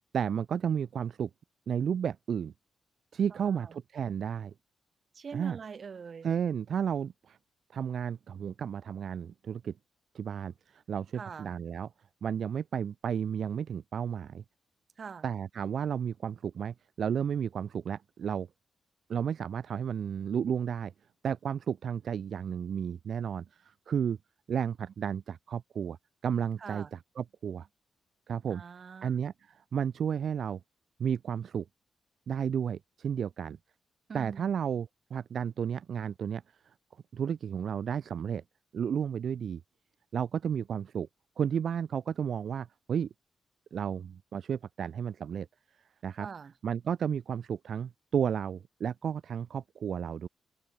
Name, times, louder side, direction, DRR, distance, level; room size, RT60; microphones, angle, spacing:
voice 1, 0.1-1.3 1.7-2.5 3.1-4.5 5.3-5.6 6.2-7.4 7.7-9.7 10.1-11.9 12.2-14.4 15.2-18.5 19.1-20.9 21.2-24.2 24.5-26.0 26.2-27.7 28.3-28.6 29.0-30.6 31.0-31.6 32.3-33.6 34.1-36.4 37.1-38.4 38.7-39.6 40.1-41.1 41.4-43.1 43.7-45.5 46.0-46.3 46.6-50.3, right 8 dB, 60° right, 1.2 m, -32 dB
voice 2, 3.3-3.8 5.1-6.3 11.1-11.6 15.0-15.3 26.6-26.9 28.5-29.1 34.1-34.5 46.2-46.5, right 6 dB, 45° right, 3.4 m, -43 dB
wide cardioid pair, 140°, 0 cm